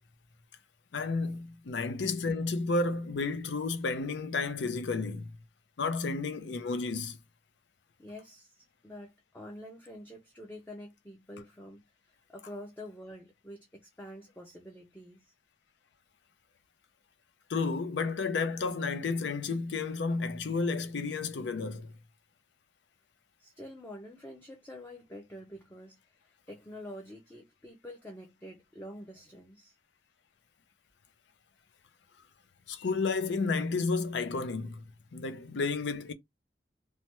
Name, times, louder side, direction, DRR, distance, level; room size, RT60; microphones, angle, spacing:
voice 1, 0.9-5.3 5.8-7.2 17.5-22.0 32.7-34.9 35.1-36.1, left 4 dB, 80° left, 0.5 m, -31 dB
voice 2, 8.0-11.8 12.3-15.3 23.4-26.0 26.5-29.8, left 1 dB, 10° left, 0.5 m, -47 dB
3.2 x 2.1 x 2.9 m
head